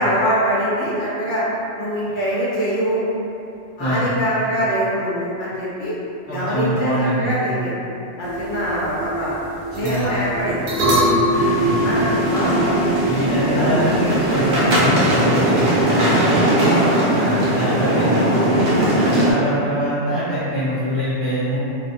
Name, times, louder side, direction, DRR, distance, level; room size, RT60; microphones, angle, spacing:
voice 1, 0.0-1.4 1.8-3.0 3.8-5.9 6.3-7.7 8.2-9.3 9.7-10.7 11.0-11.1 11.8-12.8 13.2-13.8 16.5-17.4 18.3-18.4 18.9-19.2, equal, 50° left, -9 dB, 0.7 m, -24 dB
voice 2, 6.3-7.3 9.8-10.1 10.8-11.7 12.5-12.6 13.1-16.5 17.1-18.3 18.9-21.6, equal, 15° left, -15 dB, 0.8 m, -24 dB
sound 1, 8.2-14.8, equal, 85° right, 0.9 m, -24 dB
sound 2, 11.3-19.3, right 1 dB, 55° right, 0.9 m, -19 dB
2.4 x 2.1 x 2.9 m, 2.8 s
omnidirectional pair, 1.3 m